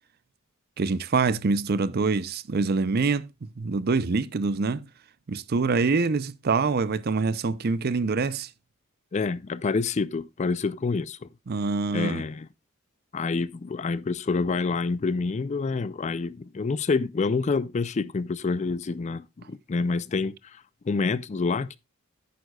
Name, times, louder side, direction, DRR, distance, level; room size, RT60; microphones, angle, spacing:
voice 1, 0.8-3.3 3.6-4.8 5.3-8.5 11.5-12.2, right 4 dB, 45° right, 0.5 m, -25 dB
voice 2, 9.1-11.3 11.9-12.5 13.1-20.3 20.9-21.8, left 4 dB, 30° left, 0.4 m, -27 dB
10.5 x 9.3 x 2.3 m
head